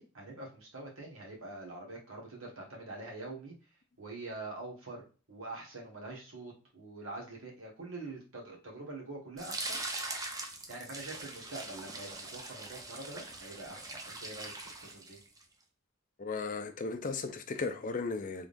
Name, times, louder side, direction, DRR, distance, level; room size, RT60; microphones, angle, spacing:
voice 1, 0.0-9.8 10.7-15.2, right 2 dB, 70° right, 1.3 m, -45 dB
sound 1, 9.4-15.4, right 2 dB, 15° right, 0.4 m, -42 dB
voice 2, 16.2-18.5, left 4 dB, 40° left, 0.4 m, -36 dB
3.5 x 3.5 x 2.5 m
head